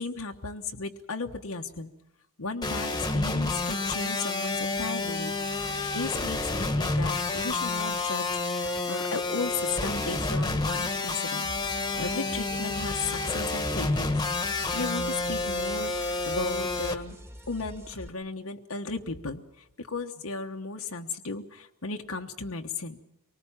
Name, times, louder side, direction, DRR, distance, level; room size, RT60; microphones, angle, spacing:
voice 1, 0.0-1.9 2.4-5.4 5.9-11.5 12.0-14.2 14.7-17.2 17.5-23.0, left 4 dB, 85° left, 3 dB, 1.3 m, -35 dB
sound 1, 2.6-16.9, left 2 dB, 20° left, 1.4 m, -29 dB
sound 2, 11.4-18.1, equal, 15° right, 2.0 m, -45 dB
24.5 x 19.5 x 7.3 m, 0.87 s
head